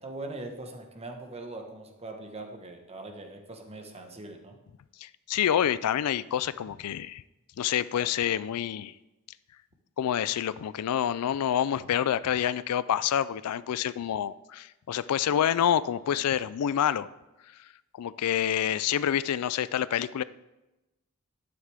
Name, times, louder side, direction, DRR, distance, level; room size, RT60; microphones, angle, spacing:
voice 1, 0.0-4.6, right 2 dB, 30° right, 3 dB, 1.2 m, -41 dB
voice 2, 5.0-7.2 7.6-8.9 10.0-17.1 18.0-20.2, left 9 dB, 90° left, 17 dB, 0.4 m, -27 dB
11.0 x 9.5 x 3.5 m, 1.0 s
head